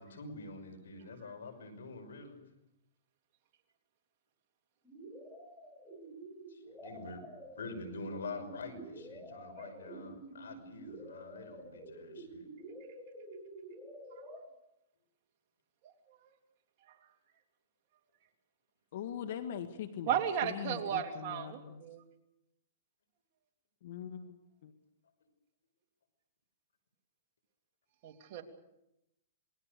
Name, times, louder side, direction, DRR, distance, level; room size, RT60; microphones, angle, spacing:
voice 1, 0.0-2.4 6.5-7.2 7.6-12.5, left 3 dB, 85° left, 5 dB, 6.0 m, -46 dB
sound 1, 4.8-14.4, right 1 dB, 5° left, 7.0 m, -49 dB
voice 2, 15.8-16.2 17.0-17.1 20.1-22.0 28.0-28.4, right 9 dB, 45° right, 3 dB, 3.0 m, -35 dB
voice 3, 18.9-21.8 23.8-24.7, left 8 dB, 60° left, 8 dB, 1.7 m, -42 dB
27.0 x 20.5 x 6.7 m, 0.88 s
hypercardioid pair, 150°, 0 cm